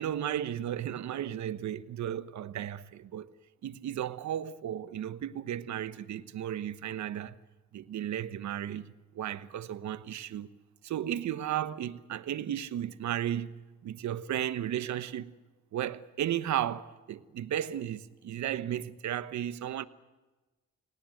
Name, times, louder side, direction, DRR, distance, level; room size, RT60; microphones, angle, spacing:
voice 1, 0.0-3.3 3.6-7.3 7.7-10.5 10.8-15.3 15.7-19.8, right 11 dB, 70° right, 1.1 m, -34 dB
28.5 x 19.0 x 7.9 m
cardioid pair, 90°, 30 cm